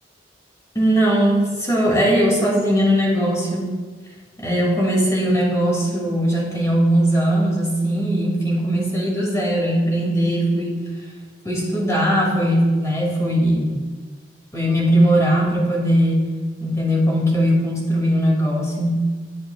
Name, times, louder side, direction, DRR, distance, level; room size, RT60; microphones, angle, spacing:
voice 1, 0.7-3.7 4.4-11.0 11.4-13.8 14.5-16.2 16.6-19.1, equal, 15° left, -3 dB, 2.7 m, -19 dB
19.5 x 8.6 x 2.5 m, 1.4 s
head